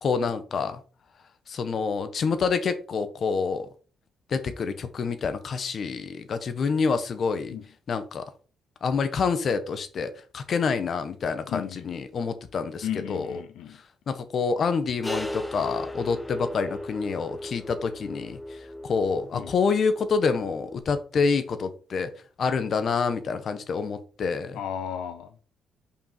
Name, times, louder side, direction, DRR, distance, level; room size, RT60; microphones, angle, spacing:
voice 1, 0.0-0.8 1.5-3.7 4.3-7.6 7.9-8.3 8.8-13.4 14.1-22.1 22.4-24.6, left 5 dB, 55° left, 1.2 m, -27 dB
voice 2, 11.5-11.9 12.8-13.8 19.3-19.5 24.5-25.3, left 9 dB, 85° left, 0.7 m, -34 dB
sound 1, 15.0-20.8, left 1 dB, ahead, 1.0 m, -37 dB
5.4 x 5.3 x 4.5 m
cardioid pair, 90°, 0 cm